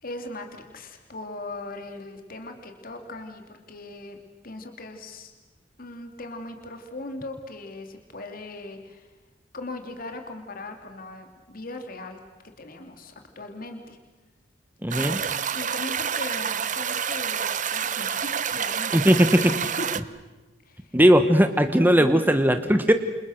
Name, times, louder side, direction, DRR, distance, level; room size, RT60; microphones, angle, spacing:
voice 1, 0.0-4.2 4.4-5.3 5.8-9.1 9.5-12.2 12.6-14.0 14.9-15.3 15.5-18.9 19.2-19.4 19.8-19.9 20.6-21.0 22.0-22.2, left 2 dB, 50° left, 5 dB, 2.8 m, -39 dB
voice 2, 14.8-15.2 18.9-19.5 20.9-22.9, equal, 10° right, 8 dB, 1.2 m, -18 dB
sound 1, 14.9-20.0, right 8 dB, 45° right, 1.0 m, -28 dB
28.5 x 28.0 x 6.6 m, 1.1 s
head